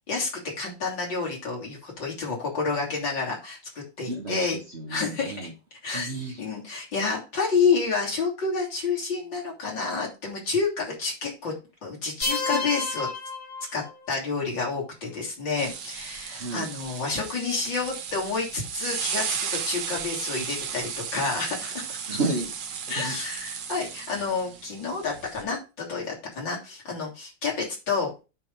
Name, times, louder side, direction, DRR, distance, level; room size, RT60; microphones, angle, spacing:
voice 1, 0.1-4.6 4.9-5.5 5.8-6.1 6.4-11.5 11.8-13.1 13.7-13.8 14.1-22.0 22.9-28.1, left 4 dB, 75° left, 3.9 m, -29 dB
voice 2, 4.1-5.5 5.9-6.4 12.5-12.6 16.3-16.7 20.4-20.5 22.1-23.3 24.2-24.3, right 2 dB, 40° right, 1.3 m, -33 dB
sound 1, 12.2-14.2, left 3 dB, 40° left, 1.7 m, -31 dB
sound 2, 15.6-25.4, right 7 dB, 70° right, 1.7 m, -35 dB
9.7 x 3.7 x 5.5 m
omnidirectional pair, 2.1 m